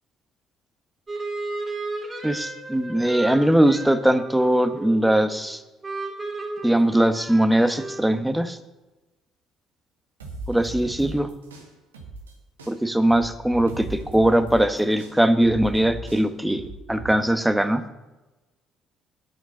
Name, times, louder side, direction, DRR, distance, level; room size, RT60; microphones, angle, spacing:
sound 1, 1.1-5.4 5.8-8.2, right 2 dB, 25° right, 2.4 m, -34 dB
voice 1, 2.2-5.6 6.6-8.6 10.5-11.3 12.7-16.6 16.9-17.8, right 1 dB, 5° right, 10 dB, 1.1 m, -20 dB
sound 2, 10.2-12.3 12.6-17.2, right 2 dB, 90° right, 1.5 m, -38 dB
7.9 x 7.6 x 7.1 m, 1.1 s
hypercardioid pair, 50°, 0 cm